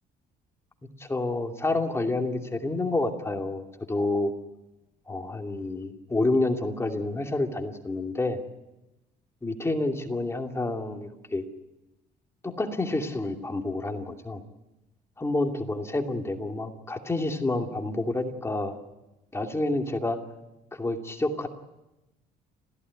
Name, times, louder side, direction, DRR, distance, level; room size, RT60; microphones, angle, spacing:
voice 1, 1.0-4.3 5.1-8.4 9.4-11.4 12.4-14.4 15.2-18.8 19.3-20.2 20.7-21.5, left 2 dB, 15° left, 3 dB, 2.6 m, -28 dB
30.0 x 15.5 x 9.6 m, 0.99 s
cardioid pair, 110°, 17 cm